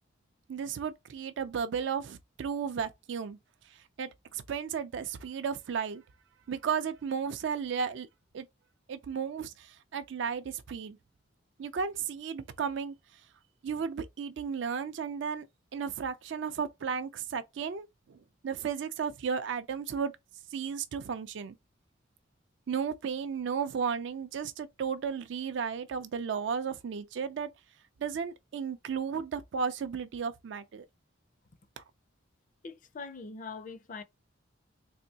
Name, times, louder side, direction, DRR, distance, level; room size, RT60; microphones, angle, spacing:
voice 1, 0.5-3.4 3.7-6.0 6.5-8.1 8.3-8.5 8.9-11.0 11.6-12.9 13.6-15.5 15.7-18.2 18.4-20.1 20.5-21.5 22.7-27.5 28.0-30.9 31.8-31.9, right 6 dB, 65° right, 0.4 m, -34 dB
voice 2, 32.6-34.0, left 4 dB, 45° left, 0.4 m, -42 dB
3.4 x 2.9 x 2.7 m
head